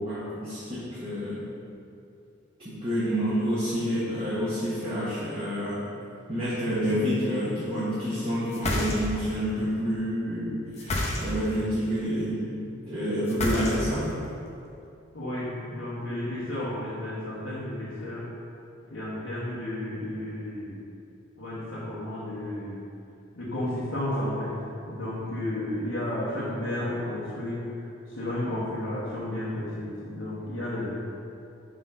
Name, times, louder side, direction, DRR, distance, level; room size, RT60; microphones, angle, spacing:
voice 1, 0.0-1.4 2.6-5.8 6.3-12.5 12.8-14.1, equal, 25° right, -11 dB, 1.1 m, -28 dB
sound 1, 8.5-9.4 10.7-11.6 13.3-14.1, left 1 dB, 30° left, 0.7 m, -29 dB
voice 2, 15.1-18.3 18.9-20.8 21.4-22.8 23.3-27.6 28.1-30.9, left 1 dB, 85° left, -10 dB, 1.3 m, -32 dB
5.3 x 3.9 x 5.5 m, 2.6 s
head